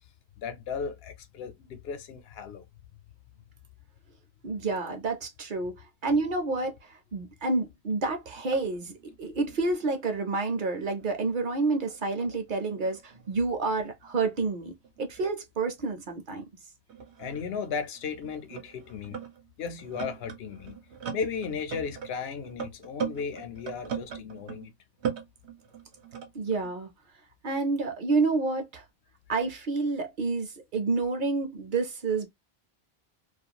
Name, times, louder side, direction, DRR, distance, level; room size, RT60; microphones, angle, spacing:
voice 1, 0.4-2.6 17.2-19.2 19.6-20.8 21.1-24.7, left 6 dB, 70° left, 0.8 m, -35 dB
voice 2, 4.4-5.7 6.0-8.9 9.2-14.7 15.0-16.4 26.3-26.9 27.4-28.8 29.3-32.3, right 3 dB, 55° right, 0.7 m, -29 dB
sound 1, 7.9-8.0 8.3-11.2 11.4-15.2 16.1-16.2 16.9-24.7 25.0-26.7, right 7 dB, 85° right, 0.9 m, -40 dB
2.4 x 2.3 x 2.7 m
omnidirectional pair, 1.1 m